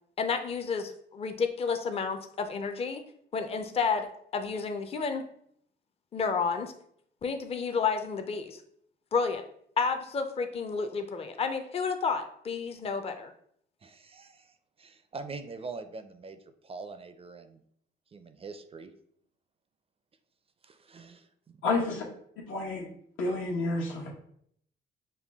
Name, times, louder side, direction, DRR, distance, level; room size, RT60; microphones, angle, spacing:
voice 1, 0.2-3.0 3.3-5.2 6.1-6.7 7.2-8.6 9.1-9.4 9.8-13.3, left 5 dB, 30° left, 6 dB, 0.5 m, -31 dB
voice 2, 13.8-17.6 18.1-18.9 20.6-21.6, right 4 dB, 30° right, 9 dB, 0.4 m, -44 dB
voice 3, 21.6-22.0 22.5-22.9 23.2-24.1, left 3 dB, 85° left, -1 dB, 1.1 m, -29 dB
5.5 x 2.2 x 3.5 m, 0.67 s
cardioid pair, 90°, 20 cm